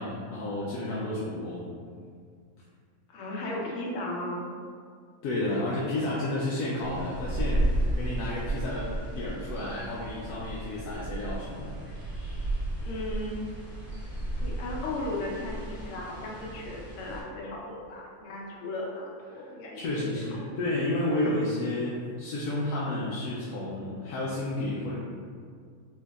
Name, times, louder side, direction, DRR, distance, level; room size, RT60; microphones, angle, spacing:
voice 1, 0.0-1.7 5.2-11.7 19.3-19.4 19.7-25.0, left 1 dB, 90° left, -6 dB, 1.1 m, -31 dB
voice 2, 3.1-4.4 12.8-13.3 14.4-19.8 20.1-20.4, left 1 dB, 65° left, -2 dB, 0.9 m, -36 dB
sound 1, 6.8-17.2, right 1 dB, 40° right, 1.2 m, -33 dB
4.5 x 2.7 x 2.3 m, 2.1 s
omnidirectional pair, 1.6 m